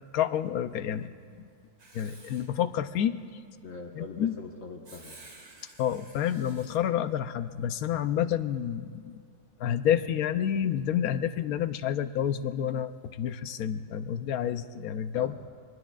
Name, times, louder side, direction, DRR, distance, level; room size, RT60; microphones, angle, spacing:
voice 1, 0.1-1.1 1.9-3.2 4.0-4.4 5.8-9.1 9.6-15.3, left 9 dB, 85° left, 11 dB, 1.1 m, -29 dB
Writing, 1.8-2.6 4.8-6.8, right 2 dB, 50° right, 1.9 m, -52 dB
voice 2, 3.6-5.2 15.1-15.5, left 3 dB, 65° left, 0 dB, 1.6 m, -42 dB
26.5 x 22.5 x 2.4 m, 2.3 s
omnidirectional pair, 1.5 m